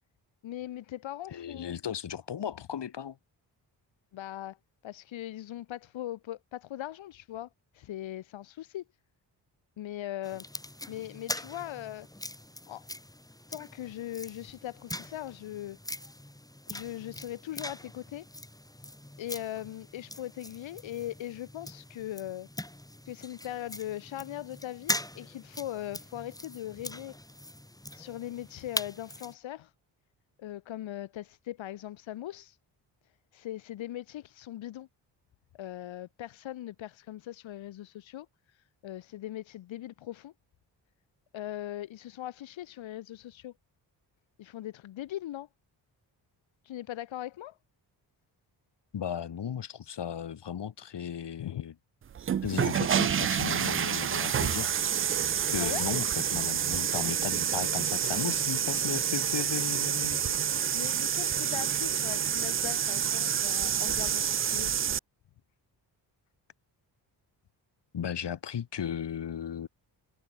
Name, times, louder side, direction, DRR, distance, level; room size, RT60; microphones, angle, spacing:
voice 1, 0.4-1.7 4.1-4.6 4.8-7.5 7.7-8.8 9.8-10.5 10.9-12.1 12.7-12.9 13.5-15.8 16.7-18.3 19.2-22.5 23.0-27.2 27.9-29.7 30.4-32.6 33.3-34.9 35.5-38.6 38.8-40.3 41.3-43.5 44.4-45.5 46.6-47.6 51.4-51.6 55.6-55.9 60.7-64.7, left 13 dB, 80° left, 3.1 m, -40 dB
voice 2, 1.3-3.2 48.9-51.7 52.4-54.7 55.5-60.3 63.3-63.6 67.9-69.7, left 8 dB, 65° left, 4.2 m, -36 dB
sound 1, 10.2-29.3, left 1 dB, 10° left, 3.3 m, -41 dB
sound 2, 52.1-65.0, right 8 dB, 30° right, 0.4 m, -28 dB
supercardioid pair, 55°, 45 cm